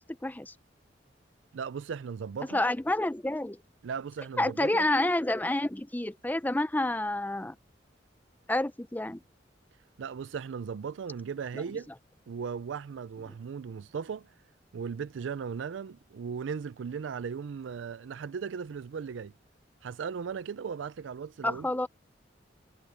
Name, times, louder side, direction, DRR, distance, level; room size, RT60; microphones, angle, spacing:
voice 1, 0.2-0.5 2.5-3.6 4.4-7.6 8.5-9.2 11.5-11.6 21.4-21.9, left 1 dB, 10° left, 0.6 m, -29 dB
voice 2, 1.5-2.6 3.8-4.9 10.0-11.9 12.3-14.3 14.7-19.3 19.8-21.7, right 6 dB, 80° right, 0.4 m, -37 dB
head